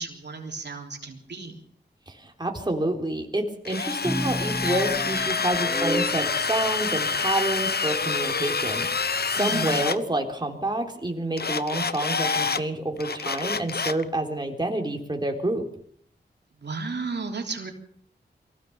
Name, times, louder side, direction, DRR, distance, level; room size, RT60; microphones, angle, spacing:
voice 1, 0.0-1.6 9.4-9.8 16.6-17.7, right 4 dB, 70° right, 2 dB, 3.5 m, -33 dB
voice 2, 2.1-15.6, right 1 dB, 25° right, 2 dB, 3.8 m, -28 dB
Drill, 3.6-10.0 11.4-12.6 13.0-14.0, left 5 dB, 60° left, 1.0 m, -27 dB
sound 1, 4.0-6.3, equal, 5° right, 1.4 m, -30 dB
23.5 x 16.0 x 7.0 m, 0.63 s
wide cardioid pair, 70°, 18 cm